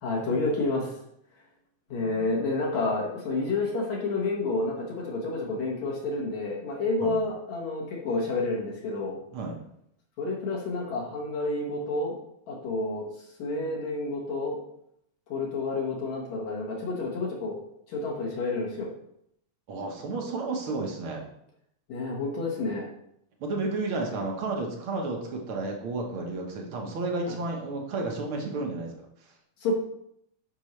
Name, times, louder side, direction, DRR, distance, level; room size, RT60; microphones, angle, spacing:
voice 1, 0.0-0.9 1.9-9.2 10.2-12.1 12.5-13.1 13.4-14.6 15.3-17.6 17.9-18.9 21.9-22.8 29.6-29.7, left 3 dB, 65° left, -3 dB, 2.6 m, -29 dB
voice 2, 19.7-21.2 23.4-28.9, right 3 dB, 60° right, 1 dB, 1.5 m, -32 dB
10.0 x 5.5 x 3.2 m, 0.75 s
omnidirectional pair, 3.6 m